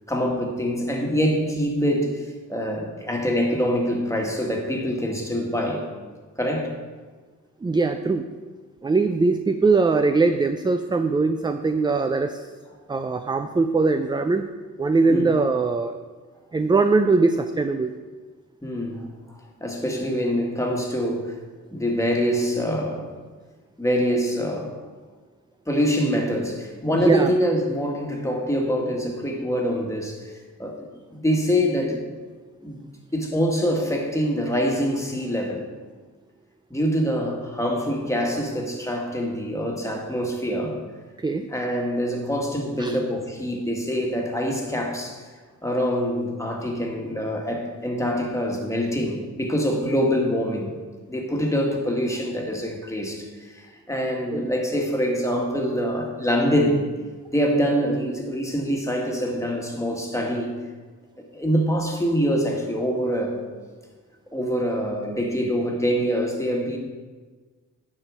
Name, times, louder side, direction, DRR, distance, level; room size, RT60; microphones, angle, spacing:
voice 1, 0.1-2.2 2.5-5.9 6.4-6.7 15.1-15.3 18.6-19.1 19.6-21.4 21.7-23.2 23.8-24.8 25.7-30.3 30.6-32.0 32.6-32.8 33.1-35.6 36.7-40.8 41.5-45.2 45.6-50.7 51.1-56.8 57.3-60.5 61.3-63.4 64.3-66.8, equal, 10° left, 0 dB, 1.6 m, -25 dB
voice 2, 7.6-8.2 8.8-12.4 12.9-14.5 14.8-16.0 16.5-17.9 26.9-27.3 41.2-41.5 42.8-43.0 54.3-54.5, right 3 dB, 15° right, 8 dB, 0.3 m, -21 dB
9.7 x 4.4 x 6.1 m, 1.4 s
wide cardioid pair, 95°, 33 cm